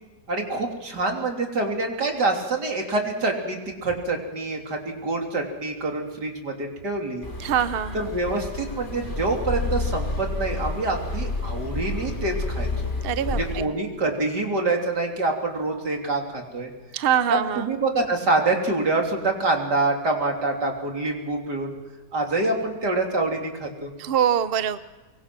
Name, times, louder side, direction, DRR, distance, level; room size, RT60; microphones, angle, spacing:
voice 1, 0.3-7.3 7.9-12.9 13.3-16.7 17.3-21.8 22.1-23.9, right 2 dB, 70° right, 1 dB, 3.9 m, -26 dB
sound 1, 7.2-13.7, left 2 dB, 30° left, 2.4 m, -30 dB
voice 2, 7.4-8.0 13.0-13.7 16.9-17.7 24.0-24.8, right 9 dB, 50° right, 13 dB, 0.7 m, -24 dB
24.0 x 23.5 x 6.1 m, 1.2 s
omnidirectional pair, 1.9 m